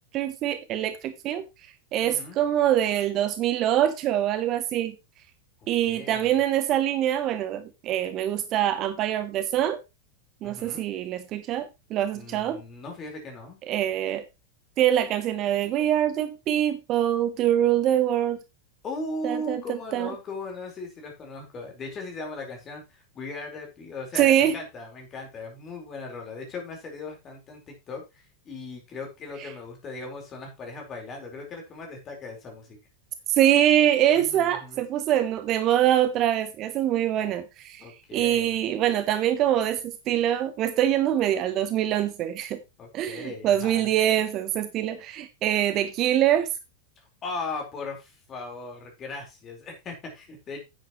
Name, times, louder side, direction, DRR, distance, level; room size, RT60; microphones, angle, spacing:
voice 1, 0.1-1.4 1.9-5.0 5.7-9.8 10.4-12.6 13.7-14.2 14.8-18.4 19.2-20.1 24.1-24.6 33.3-37.9 38.1-42.6 42.9-46.5, right 11 dB, 35° right, 1.0 m, -24 dB
voice 2, 2.0-2.4 5.6-6.4 10.4-10.8 12.1-13.6 18.8-32.8 34.1-34.8 37.8-38.5 42.8-43.9 47.0-50.6, left 2 dB, 25° left, 4.5 m, -38 dB
9.9 x 9.2 x 3.1 m
figure-of-eight pair, 90°, 0 cm